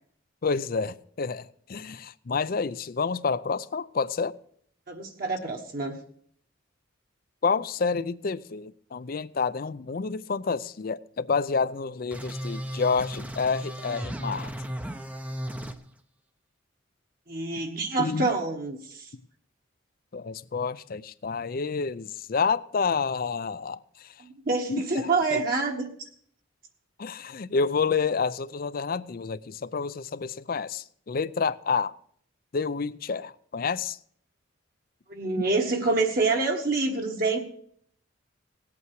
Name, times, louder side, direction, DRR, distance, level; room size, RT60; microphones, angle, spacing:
voice 1, 0.4-4.4 7.4-14.5 18.0-18.3 20.1-24.1 24.7-24.8 25.3-25.4 27.0-32.0 32.5-34.0, left 5 dB, 45° left, 0.4 m, -29 dB
voice 2, 4.9-6.0 17.3-19.1 24.4-26.1 35.1-37.4, right 3 dB, 45° right, 1.3 m, -27 dB
sound 1, 12.1-15.8, equal, 5° right, 0.6 m, -35 dB
18.0 x 8.4 x 4.7 m
head